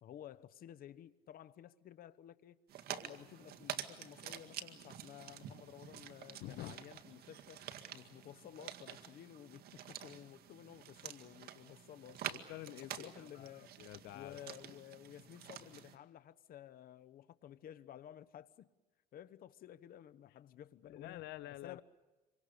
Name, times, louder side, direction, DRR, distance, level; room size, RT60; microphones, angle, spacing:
voice 1, 0.0-2.6 2.9-12.3 12.7-13.8 14.1-18.7 19.1-21.2 21.6-21.8, left 11 dB, 60° left, 1.0 m, -54 dB
sound 1, 2.7-16.0, right 10 dB, 65° right, 2.0 m, -48 dB
voice 2, 6.4-6.7 12.2-13.5 13.8-14.4 20.8-21.8, left 15 dB, 85° left, 0.9 m, -48 dB
28.0 x 24.5 x 6.7 m
cardioid pair, 110°, 17 cm